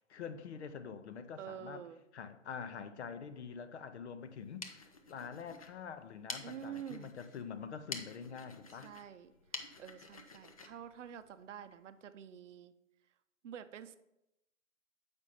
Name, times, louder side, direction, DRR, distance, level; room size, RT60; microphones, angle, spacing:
voice 1, 0.1-1.8 2.1-8.9, left 6 dB, 55° left, 0.7 m, -46 dB
voice 2, 1.4-2.0 6.4-7.1 8.8-12.7 13.4-14.0, right 9 dB, 65° right, 0.6 m, -48 dB
sound 1, 4.3-11.8, left 4 dB, 30° left, 0.4 m, -49 dB
7.1 x 5.2 x 4.1 m
hypercardioid pair, 145°, 40 cm